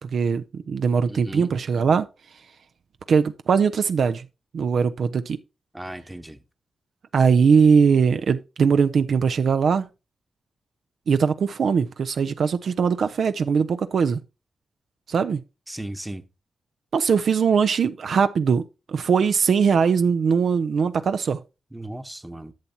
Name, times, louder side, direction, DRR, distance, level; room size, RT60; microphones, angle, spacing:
voice 1, 0.0-2.1 3.1-4.3 4.5-5.4 7.1-9.9 11.1-14.2 15.1-15.4 16.9-21.4, right 6 dB, 70° right, 0.4 m, -21 dB
voice 2, 1.1-1.5 5.7-6.4 15.7-16.2 21.7-22.5, right 1 dB, 10° right, 0.9 m, -36 dB
10.5 x 7.0 x 2.7 m
supercardioid pair, 50°, 0 cm